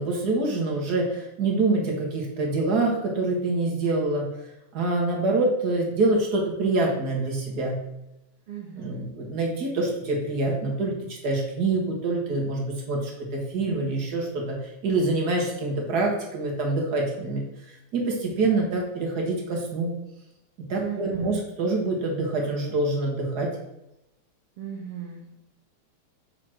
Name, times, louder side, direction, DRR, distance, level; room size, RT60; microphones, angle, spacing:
voice 1, 0.0-4.3 4.7-7.8 8.8-17.4 17.9-19.9 20.6-23.5, right 2 dB, 50° right, 0 dB, 1.3 m, -26 dB
voice 2, 8.5-9.1 20.8-21.4 24.6-25.3, right 8 dB, 85° right, 2 dB, 1.2 m, -36 dB
6.1 x 3.9 x 6.1 m, 0.89 s
omnidirectional pair, 3.4 m